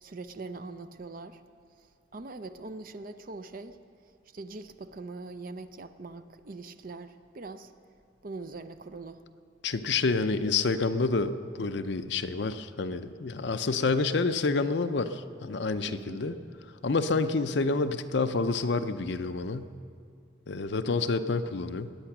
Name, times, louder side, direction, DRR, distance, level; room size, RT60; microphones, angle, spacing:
voice 1, 0.0-1.4 1.8-3.8 4.3-7.7 8.2-9.2 15.9-16.2, right 3 dB, 45° right, 10 dB, 0.6 m, -42 dB
voice 2, 9.6-16.4 16.8-19.7 20.5-22.0, left 3 dB, 65° left, 10 dB, 0.6 m, -28 dB
20.0 x 8.9 x 6.0 m, 2.3 s
head